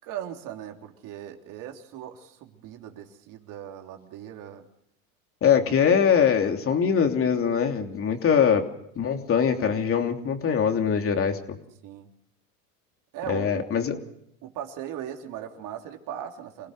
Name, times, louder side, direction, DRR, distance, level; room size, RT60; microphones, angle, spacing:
voice 1, 0.0-4.6 11.8-12.1 13.1-14.0 14.4-16.7, right 10 dB, 45° right, 3 dB, 3.5 m, -39 dB
voice 2, 5.4-8.6 8.9-11.6 13.3-13.9, left 7 dB, 30° left, 4 dB, 3.1 m, -22 dB
28.0 x 17.5 x 6.6 m, 0.74 s
hypercardioid pair, 105°, 43 cm